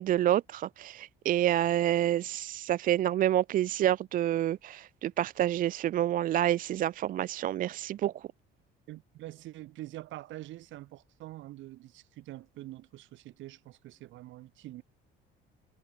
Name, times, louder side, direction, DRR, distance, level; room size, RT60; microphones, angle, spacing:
voice 1, 0.0-8.2, right 12 dB, 45° right, 0.4 m, -28 dB
voice 2, 8.9-14.8, right 16 dB, 70° right, 4.4 m, -45 dB
cardioid pair, 120°, 20 cm